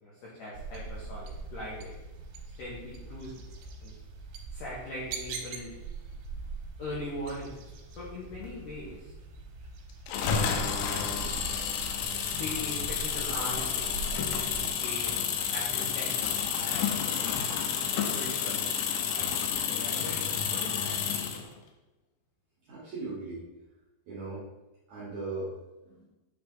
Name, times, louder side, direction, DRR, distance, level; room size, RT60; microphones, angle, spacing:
voice 1, 0.0-1.9 2.6-3.4 3.8-3.9 4.5-5.8 6.8-9.1 12.3-17.2 17.9-18.8 19.7-20.8, left 1 dB, 75° left, -6 dB, 1.9 m, -41 dB
sound 1, 0.5-14.7, right 4 dB, 80° right, 3.1 m, -42 dB
sound 2, 10.1-21.5, left 7 dB, 90° left, 3.0 m, -30 dB
voice 2, 22.6-23.5 24.1-24.5 24.9-25.5 25.8-26.1, right 3 dB, 60° right, -8 dB, 2.0 m, -38 dB
8.7 x 3.6 x 3.7 m, 1.0 s
omnidirectional pair, 5.3 m